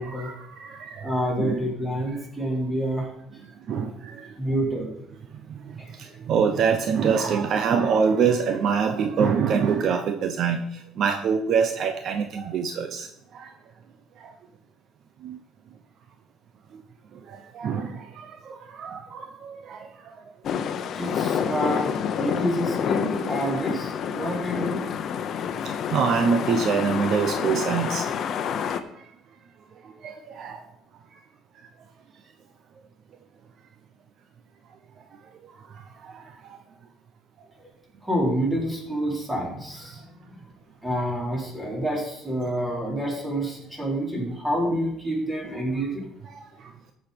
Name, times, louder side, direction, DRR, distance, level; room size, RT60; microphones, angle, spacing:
voice 1, 0.0-1.1 1.4-1.7 3.7-4.2 5.5-5.6 6.3-10.6 11.0-13.1 13.3-13.5 15.2-15.4 17.5-19.8 25.9-28.1 30.0-30.6, right 6 dB, 55° right, 7 dB, 0.8 m, -24 dB
voice 2, 1.0-3.1 4.4-4.9 5.8-5.9 20.9-24.8 37.6-37.7 38.0-40.4 40.8-46.0, equal, 10° right, -3 dB, 4.0 m, -28 dB
sound 1, 20.4-28.8, left 7 dB, 50° left, 0.9 m, -28 dB
14.0 x 6.4 x 5.2 m, 0.78 s
cardioid pair, 115°, 0 cm